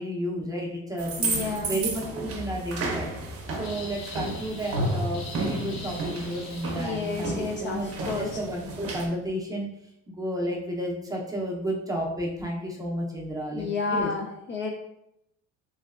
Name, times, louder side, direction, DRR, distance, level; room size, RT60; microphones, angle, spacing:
voice 1, 0.0-1.3 1.6-3.1 3.5-7.3 7.6-9.7 10.1-14.1, equal, 10° right, -2 dB, 0.6 m, -32 dB
sound 1, 1.0-9.1, right 2 dB, 45° right, 0.7 m, -32 dB
voice 2, 1.2-1.8 6.7-8.3 13.5-14.7, left 4 dB, 35° left, 1 dB, 0.4 m, -31 dB
sound 2, 3.6-7.3, left 4 dB, 70° left, 0.8 m, -44 dB
3.1 x 2.7 x 2.4 m, 0.79 s
cardioid pair, 110°, 33 cm